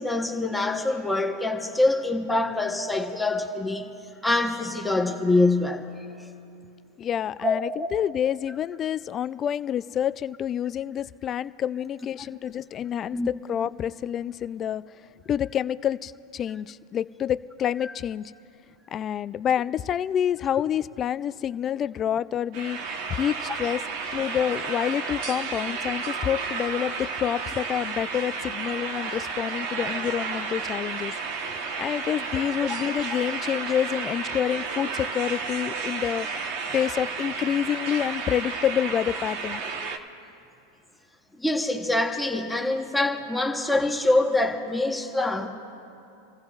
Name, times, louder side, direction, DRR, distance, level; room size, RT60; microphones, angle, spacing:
voice 1, 0.0-3.9 4.2-5.9 7.4-7.9 13.1-13.3 23.5-23.6 39.6-39.7 41.4-45.5, left 2 dB, 5° left, 1 dB, 1.1 m, -25 dB
voice 2, 7.0-14.8 15.3-18.3 18.9-23.8 24.1-31.1 31.5-36.3 36.7-39.6, left 9 dB, 30° left, 15 dB, 0.3 m, -28 dB
sound 1, 22.5-40.0, right 5 dB, 60° right, 1.1 m, -32 dB
29.5 x 15.0 x 2.4 m, 2.8 s
supercardioid pair, 120°, 0 cm